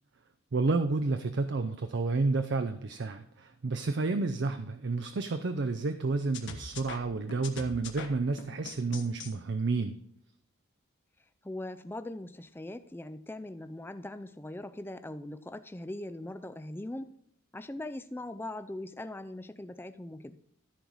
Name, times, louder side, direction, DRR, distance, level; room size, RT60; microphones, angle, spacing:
voice 1, 0.5-10.0, right 3 dB, 55° right, 8 dB, 0.5 m, -30 dB
sound 1, 6.3-9.3, left 4 dB, 55° left, 1.2 m, -43 dB
voice 2, 11.4-17.1 17.5-20.4, left 1 dB, 10° left, 11 dB, 0.4 m, -40 dB
14.0 x 4.7 x 5.4 m, 0.70 s
head